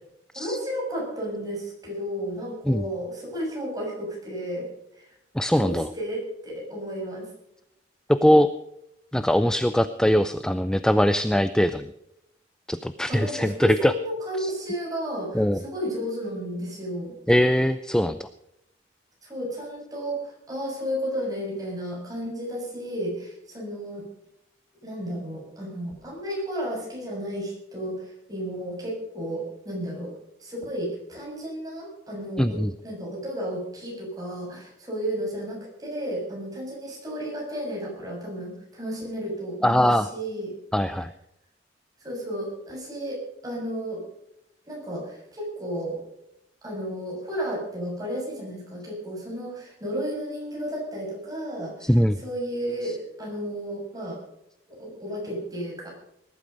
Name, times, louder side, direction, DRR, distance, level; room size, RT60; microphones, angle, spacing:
voice 1, 0.4-5.1 5.6-7.3 13.1-17.1 19.2-24.0 24.8-30.1 30.4-40.5 42.0-44.1 44.7-46.0 46.6-54.2 54.8-55.9, equal, 20° right, -2 dB, 7.1 m, -33 dB
voice 2, 5.4-5.9 8.1-8.5 9.1-11.8 12.7-13.9 14.4-14.5 15.3-15.6 17.3-18.3 32.4-32.7 39.6-40.1 40.7-41.1 51.8-52.2, equal, 5° left, 11 dB, 0.5 m, -21 dB
20.0 x 12.0 x 5.3 m, 0.80 s
head